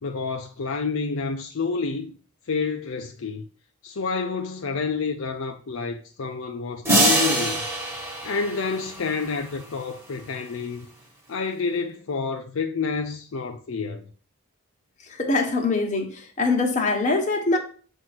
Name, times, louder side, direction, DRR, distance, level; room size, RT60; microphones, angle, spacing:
voice 1, 0.0-2.1 2.5-3.4 3.8-7.6 8.2-10.9 11.3-14.1, left 4 dB, 65° left, 0.5 m, -29 dB
sound 1, 6.8-9.3, right 1 dB, 10° right, 1.6 m, -24 dB
voice 2, 15.2-16.1 16.4-17.6, left 3 dB, 35° left, 1.3 m, -22 dB
7.7 x 2.7 x 5.9 m
head